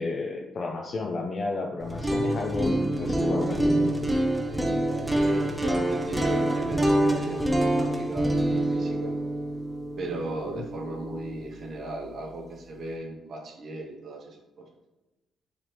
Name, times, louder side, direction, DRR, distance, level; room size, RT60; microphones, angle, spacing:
voice 1, 0.0-4.1 10.5-10.6, left 3 dB, 45° left, 1 dB, 0.4 m, -32 dB
sound 1, 1.8-11.8, right 1 dB, 5° right, 0.5 m, -26 dB
voice 2, 5.2-9.2 10.0-14.7, right 2 dB, 55° right, 1 dB, 0.7 m, -37 dB
3.9 x 3.1 x 2.9 m, 1.0 s
cardioid pair, 90°, 0 cm